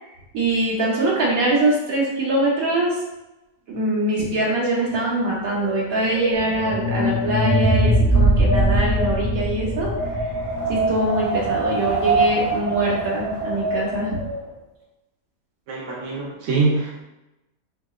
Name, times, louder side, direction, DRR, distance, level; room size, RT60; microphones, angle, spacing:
voice 1, 0.3-3.0 3.7-10.4 10.7-14.2, right 2 dB, 85° right, -5 dB, 1.6 m, -23 dB
Wind, 5.3-14.5, right 1 dB, 15° left, 0.7 m, -26 dB
sound 1, 6.3-11.5, right 1 dB, 75° left, 1.8 m, -21 dB
voice 2, 15.7-17.0, right 3 dB, 65° right, -4 dB, 1.2 m, -23 dB
4.6 x 2.9 x 2.4 m, 0.96 s
omnidirectional pair, 1.5 m